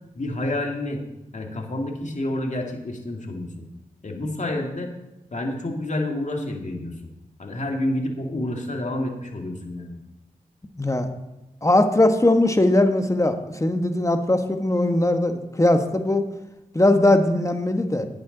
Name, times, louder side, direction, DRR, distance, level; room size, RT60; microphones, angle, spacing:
voice 1, 0.2-1.0 1.3-3.6 4.0-4.9 5.3-7.1 7.4-10.0, left 1 dB, 55° left, 2 dB, 1.9 m, -29 dB
voice 2, 10.8-11.1 11.6-16.2 16.7-18.1, left 1 dB, 20° left, 7 dB, 1.2 m, -20 dB
11.0 x 9.1 x 3.9 m, 0.98 s
cardioid pair, 40°, 15 cm